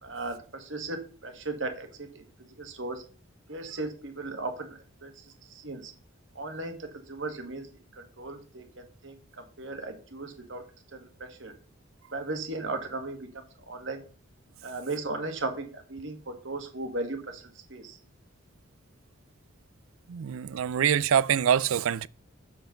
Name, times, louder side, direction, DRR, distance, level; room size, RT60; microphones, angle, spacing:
voice 1, 0.0-2.2 2.6-3.0 3.5-5.9 6.4-7.7 7.9-10.6 10.9-11.5 12.1-14.0 14.6-17.4 17.7-18.0, right 2 dB, 65° right, 1.8 m, -37 dB
voice 2, 20.1-22.1, right 8 dB, 80° right, 0.4 m, -25 dB
8.0 x 7.2 x 3.9 m
head